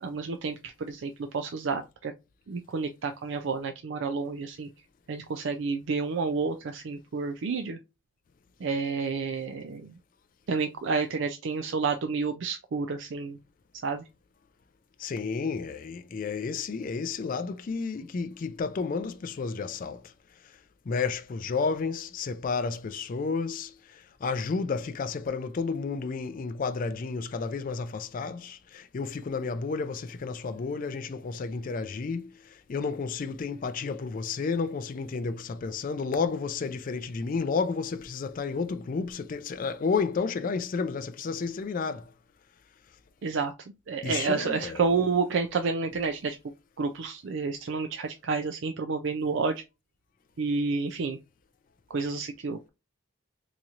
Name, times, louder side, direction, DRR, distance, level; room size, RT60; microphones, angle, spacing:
voice 1, 0.0-2.1 2.5-4.7 5.1-7.8 8.6-9.9 10.5-13.4 13.8-14.0 43.2-43.5 43.9-46.4 46.8-49.6 50.4-51.2 51.9-52.7, right 4 dB, 60° right, 0.4 m, -30 dB
voice 2, 15.0-20.1 20.4-20.6 20.9-42.1 44.0-44.9, left 4 dB, 40° left, 0.3 m, -31 dB
4.1 x 2.9 x 2.4 m
head